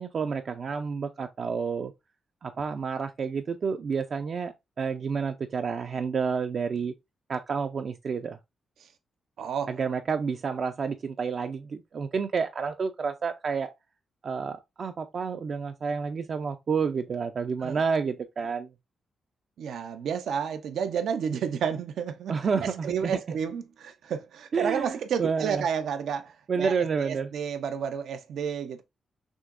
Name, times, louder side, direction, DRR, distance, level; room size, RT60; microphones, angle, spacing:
voice 1, 0.0-1.9 2.4-6.9 7.3-8.4 9.7-13.7 14.2-18.7 22.3-23.1 24.5-25.6 26.5-27.3, right 5 dB, 40° right, 0.4 m, -29 dB
voice 2, 9.4-9.8 17.6-17.8 19.6-22.3 22.6-28.8, right 7 dB, 90° right, 0.6 m, -31 dB
6.2 x 2.9 x 2.5 m
wide cardioid pair, 175°, 0 cm